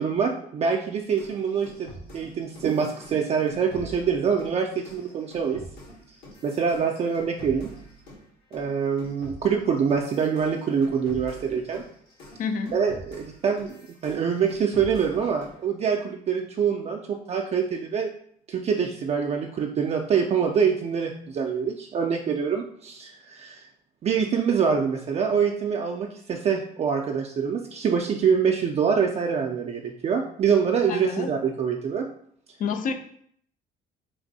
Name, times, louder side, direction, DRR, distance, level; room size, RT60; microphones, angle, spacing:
voice 1, 0.0-5.6 6.4-7.7 8.5-11.8 12.7-18.1 18.5-23.7 24.0-32.1, right 6 dB, 40° right, 2 dB, 0.4 m, -25 dB
sound 1, 1.2-8.2 8.5-15.6, equal, 80° left, 1.6 m, -45 dB
voice 2, 12.4-12.7 30.9-31.3 32.6-32.9, left 5 dB, 50° left, 7 dB, 0.5 m, -28 dB
3.4 x 2.6 x 4.0 m, 0.65 s
cardioid pair, 110°, 17 cm